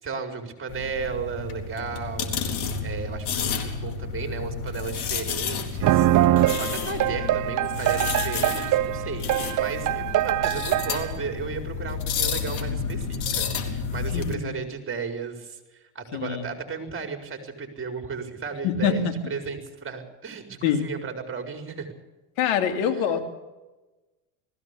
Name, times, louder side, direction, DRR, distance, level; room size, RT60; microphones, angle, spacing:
voice 1, 0.0-2.3 2.8-6.1 6.6-21.9 22.9-23.2, right 5 dB, 30° right, 5 dB, 5.1 m, -34 dB
sound 1, 0.7-14.3, left 6 dB, 65° left, 4.0 m, -31 dB
sound 2, 5.8-11.1, right 15 dB, 45° right, 0.7 m, -23 dB
voice 2, 14.1-14.5 16.1-16.4 18.6-19.2 20.6-20.9 22.4-23.2, left 8 dB, 80° left, 6 dB, 2.8 m, -25 dB
19.5 x 16.0 x 8.5 m, 1.1 s
supercardioid pair, 95°, 43 cm